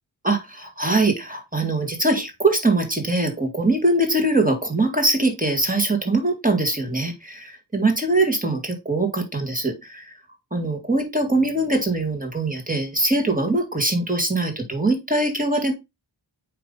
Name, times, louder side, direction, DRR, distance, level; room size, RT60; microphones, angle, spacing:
voice 1, 0.2-10.2 10.5-15.7, right 2 dB, 15° right, 4 dB, 2.2 m, -22 dB
9.2 x 3.4 x 4.0 m, 0.23 s
wide cardioid pair, 75°, 49 cm